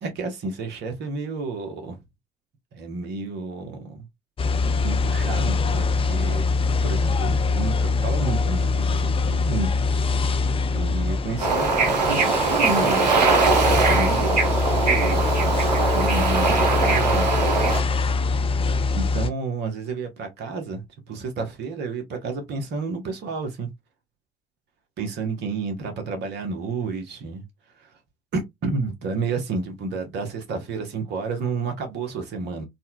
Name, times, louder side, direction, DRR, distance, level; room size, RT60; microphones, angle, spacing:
voice 1, 0.0-2.0 2.7-4.1 4.8-6.5 6.8-10.4 10.7-18.2 18.9-23.7 25.0-28.0 28.3-32.6, right 4 dB, 55° right, 1.1 m, -31 dB
sound 1, 4.4-19.3, left 4 dB, 25° left, 0.5 m, -24 dB
Bird / Ocean, 11.4-17.8, right 4 dB, 85° right, 0.7 m, -21 dB
4.2 x 2.2 x 2.2 m
figure-of-eight pair, 55°, 21 cm